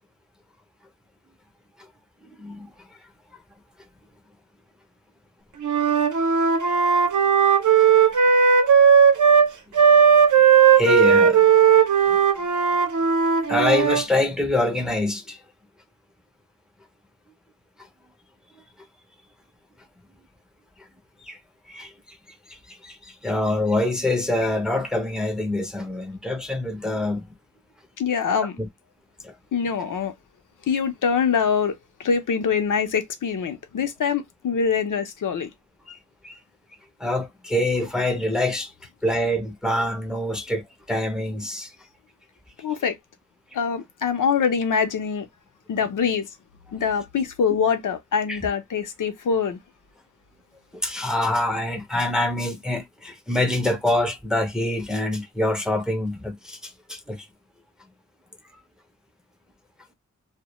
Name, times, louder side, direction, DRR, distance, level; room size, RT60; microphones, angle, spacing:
voice 1, 2.4-2.7 8.5-8.6 9.8-9.9 10.4-11.5 13.5-15.4 21.2-21.4 21.7-22.2 22.5-27.3 28.6-28.7 29.2-29.4 35.9-36.0 36.2-36.4 37.0-38.7 39.0-41.7 48.3-48.4 50.7-57.2, left 1 dB, ahead, 0.4 m, -25 dB
Wind instrument woodwind instrument, 5.6-9.5 9.7-14.1, right 7 dB, 70° right, 0.6 m, -17 dB
voice 2, 28.0-28.5 29.5-30.1 30.7-35.5 42.6-43.0 43.5-45.3 45.7-46.3 46.7-49.6, left 6 dB, 80° left, 0.6 m, -24 dB
2.1 x 2.1 x 2.8 m
wide cardioid pair, 125°, 31 cm